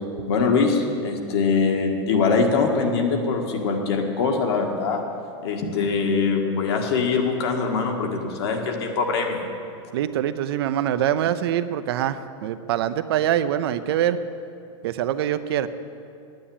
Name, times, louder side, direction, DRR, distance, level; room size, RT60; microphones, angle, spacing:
voice 1, 0.3-5.0 5.4-9.4, left 4 dB, 60° left, 2 dB, 1.9 m, -23 dB
voice 2, 9.9-14.2 14.8-15.7, right 11 dB, 55° right, 12 dB, 0.6 m, -24 dB
9.7 x 9.3 x 8.8 m, 2.5 s
supercardioid pair, 165°, 15 cm